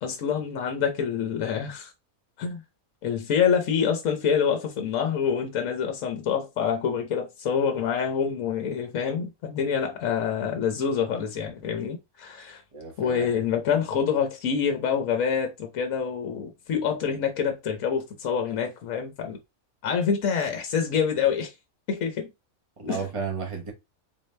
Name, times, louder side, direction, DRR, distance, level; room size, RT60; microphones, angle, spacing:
voice 1, 0.0-1.9 2.4-2.6 3.0-12.6 13.0-19.4 19.8-21.5 21.9-22.3 22.9-23.0, left 7 dB, 70° left, 1.2 m, -26 dB
voice 2, 12.7-13.3 22.8-23.7, right 5 dB, 25° right, 1.1 m, -33 dB
3.9 x 2.8 x 3.2 m
omnidirectional pair, 1.5 m